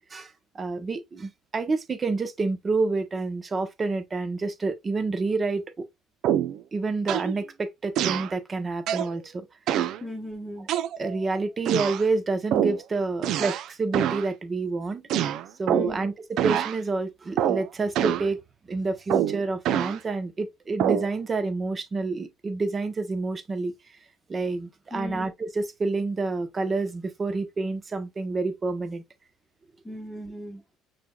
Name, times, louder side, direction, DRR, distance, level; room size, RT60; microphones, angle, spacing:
voice 1, 0.1-5.8 6.7-9.5 10.7-15.2 15.6-18.4 18.7-23.7 24.3-29.0, right 3 dB, 30° right, 0.9 m, -28 dB
sound 1, 6.2-6.6 7.1-7.3 8.0-8.3 8.9-9.1 9.7-10.0 10.7-11.2 11.7-12.0 12.5-12.8 13.2-13.7 13.9-14.3 15.1-16.0 16.4-16.8 17.4-17.7 18.0-18.3 19.1-20.0 20.8-21.1, right 11 dB, 65° right, 0.4 m, -25 dB
voice 2, 10.0-10.7 15.7-16.1 24.9-25.3 29.8-30.6, equal, 10° left, 1.0 m, -37 dB
5.9 x 3.1 x 2.3 m
supercardioid pair, 85°, 0 cm